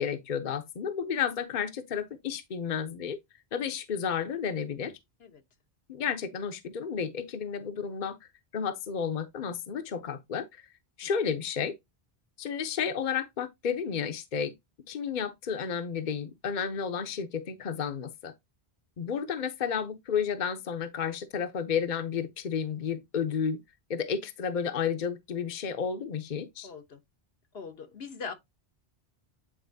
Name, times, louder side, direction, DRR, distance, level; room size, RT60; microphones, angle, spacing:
voice 1, 0.0-3.2 3.5-5.0 5.9-8.2 8.5-10.5 11.0-11.7 12.4-14.5 14.9-18.3 19.0-23.6 23.9-26.7, left 7 dB, 50° left, 0.9 m, -32 dB
voice 2, 26.6-27.0 27.5-28.3, left 5 dB, 75° left, 1.2 m, -41 dB
8.8 x 4.2 x 2.7 m
omnidirectional pair, 1.0 m